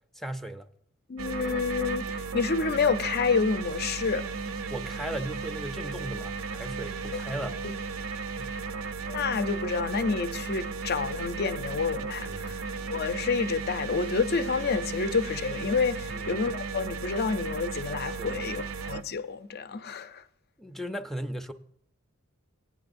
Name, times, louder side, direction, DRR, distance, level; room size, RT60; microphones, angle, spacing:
voice 1, 0.1-0.7 4.7-7.6 8.4-8.6 12.2-12.6 16.1-16.3 18.2-18.3 20.6-21.5, right 1 dB, ahead, 0.5 m, -37 dB
voice 2, 1.1-4.3 7.1-7.2 9.1-12.6 12.9-20.2, left 4 dB, 50° left, 0.6 m, -29 dB
sound 1, 1.2-19.0, right 4 dB, 65° right, 0.5 m, -35 dB
18.0 x 9.8 x 2.6 m
head